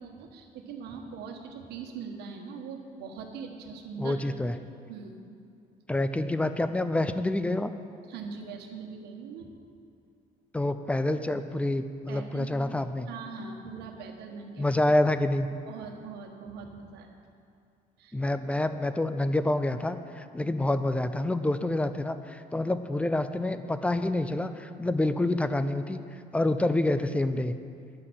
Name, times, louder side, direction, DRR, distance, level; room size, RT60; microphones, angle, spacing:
voice 1, 0.0-4.2 4.9-5.2 8.1-9.5 12.1-12.6 13.1-14.7 15.6-17.1 18.0-18.2, right 5 dB, 80° right, 3 dB, 1.4 m, -41 dB
voice 2, 4.0-4.6 5.9-7.7 10.5-13.1 14.6-15.5 18.1-26.0 26.3-27.6, left 1 dB, 5° left, 11 dB, 0.5 m, -27 dB
11.0 x 6.3 x 7.7 m, 2.4 s
cardioid pair, 110°, 17 cm